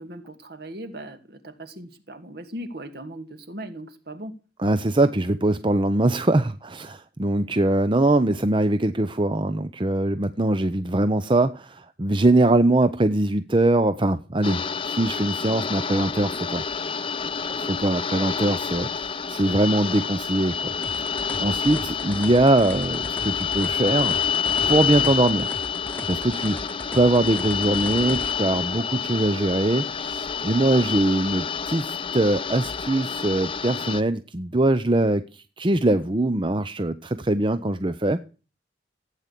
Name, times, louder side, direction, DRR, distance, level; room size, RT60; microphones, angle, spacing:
voice 1, 0.0-4.3, right 1 dB, 60° right, 2.6 m, -38 dB
voice 2, 4.6-16.6 17.6-24.2 24.7-25.5 26.1-38.2, right 2 dB, 30° right, 0.7 m, -22 dB
sound 1, 14.4-34.0, left 6 dB, 30° left, 0.7 m, -28 dB
sound 2, 20.8-28.3, left 1 dB, 10° left, 1.1 m, -38 dB
16.0 x 9.1 x 8.4 m
head